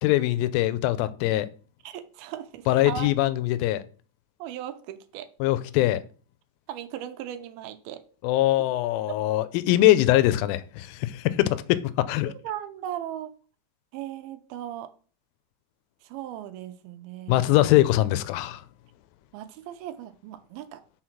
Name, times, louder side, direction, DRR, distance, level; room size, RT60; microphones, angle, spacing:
voice 1, 0.0-1.5 2.7-3.8 5.4-6.0 8.2-12.3 17.3-18.6, left 15 dB, 85° left, 2.3 m, -22 dB
voice 2, 1.8-3.1 4.4-5.3 6.7-8.0 8.6-8.7 12.3-13.3 13.9-14.9 16.0-17.6 19.3-20.8, right 11 dB, 85° right, 2.5 m, -37 dB
6.4 x 3.9 x 5.9 m
omnidirectional pair, 4.4 m